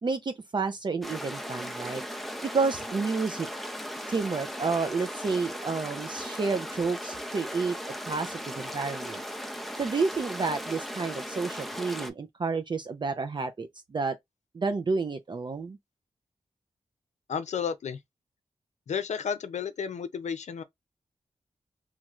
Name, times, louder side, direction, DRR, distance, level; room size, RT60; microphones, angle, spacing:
voice 1, 0.0-2.0 2.5-3.5 4.1-7.8 8.1-9.2 9.8-14.2 14.5-15.8, right 4 dB, 40° right, 0.4 m, -30 dB
sound 1, 1.0-12.1, equal, ahead, 0.6 m, -37 dB
voice 2, 17.3-18.0 18.9-20.6, left 7 dB, 75° left, 0.5 m, -32 dB
3.1 x 2.4 x 3.0 m
cardioid pair, 65°, 12 cm